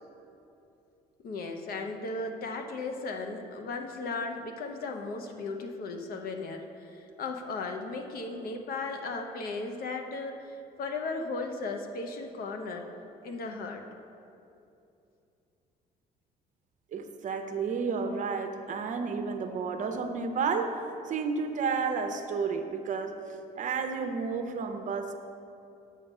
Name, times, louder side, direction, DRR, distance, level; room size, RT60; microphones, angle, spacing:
voice 1, 1.2-12.9 13.2-13.8, left 3 dB, 60° left, 4 dB, 0.9 m, -36 dB
voice 2, 16.9-25.1, right 5 dB, 50° right, 6 dB, 0.8 m, -31 dB
7.4 x 6.6 x 5.5 m, 2.7 s
cardioid pair, 110°, 17 cm